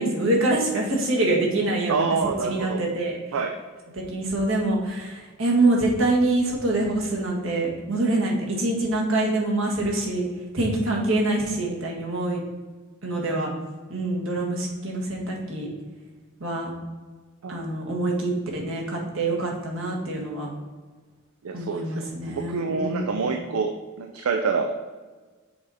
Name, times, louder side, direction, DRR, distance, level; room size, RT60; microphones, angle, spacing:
voice 1, 0.0-2.0 2.4-3.4 3.9-10.3 10.5-12.4 13.0-13.5 13.9-15.7 16.4-16.7 17.5-20.5 21.5-23.3, right 2 dB, 65° right, -1 dB, 1.6 m, -25 dB
voice 2, 1.9-2.9 3.3-3.6 17.4-17.6 21.4-24.7, right 4 dB, 85° right, 6 dB, 0.5 m, -27 dB
7.0 x 4.9 x 4.1 m, 1.4 s
head